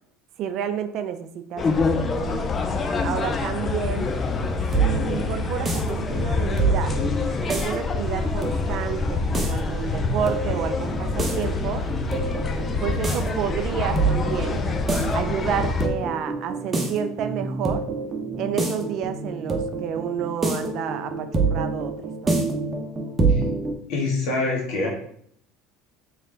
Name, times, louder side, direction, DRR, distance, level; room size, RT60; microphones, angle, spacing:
voice 1, 0.4-2.5 3.0-4.1 4.8-7.0 7.5-11.9 12.8-14.6 15.1-17.8 18.4-22.4, right 9 dB, 55° right, 9 dB, 0.4 m, -30 dB
sound 1, 1.6-15.9, left 3 dB, 30° left, 0.5 m, -26 dB
sound 2, 4.3-23.7, right 3 dB, 25° right, 0.8 m, -27 dB
voice 2, 23.9-24.9, left 3 dB, 65° left, -2 dB, 1.5 m, -25 dB
3.2 x 3.2 x 3.9 m, 0.65 s
hypercardioid pair, 80°, 0 cm